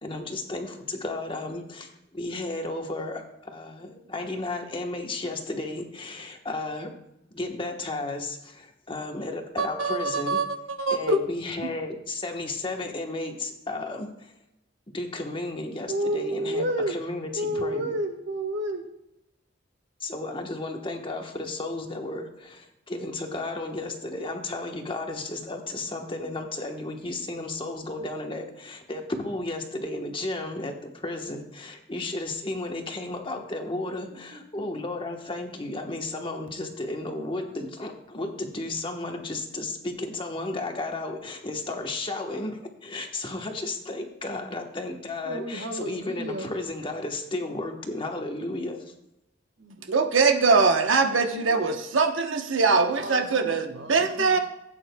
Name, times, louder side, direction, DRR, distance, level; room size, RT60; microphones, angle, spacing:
voice 1, 0.0-6.9 7.3-10.4 10.9-14.3 14.9-17.9 20.0-48.9, left 2 dB, 25° left, 3 dB, 1.1 m, -33 dB
voice 2, 9.6-10.5 10.8-11.2 49.9-54.4, right 4 dB, 80° right, 5 dB, 0.9 m, -22 dB
voice 3, 15.9-17.0 17.3-18.9 34.1-34.6 45.2-46.5 49.6-49.8 50.4-50.7 51.3-51.5 53.0-54.4, right 1 dB, 65° right, 6 dB, 1.4 m, -31 dB
16.0 x 8.9 x 2.2 m, 0.86 s
head